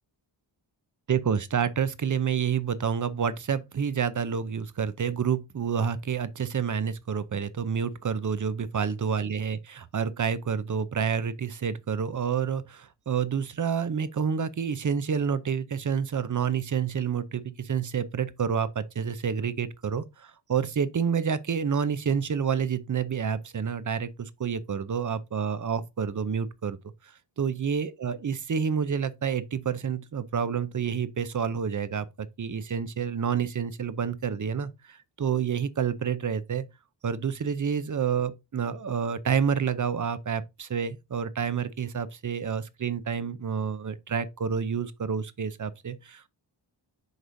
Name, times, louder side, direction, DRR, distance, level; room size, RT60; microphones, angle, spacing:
voice 1, 1.1-26.8 27.4-36.6 37.0-46.3, right 7 dB, 45° right, 0.6 m, -29 dB
8.0 x 4.9 x 2.6 m
wide cardioid pair, 105°, 45 cm